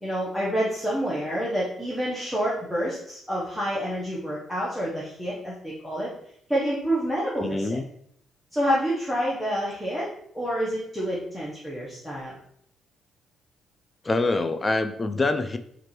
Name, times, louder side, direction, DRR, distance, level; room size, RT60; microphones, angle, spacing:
voice 1, 0.0-6.1 6.5-7.8 8.5-10.1 10.3-12.4, equal, ahead, -7 dB, 0.9 m, -28 dB
voice 2, 7.4-7.8 14.0-15.6, left 2 dB, 25° left, 8 dB, 0.4 m, -25 dB
4.5 x 2.5 x 3.0 m, 0.71 s
cardioid pair, 90°, 0 cm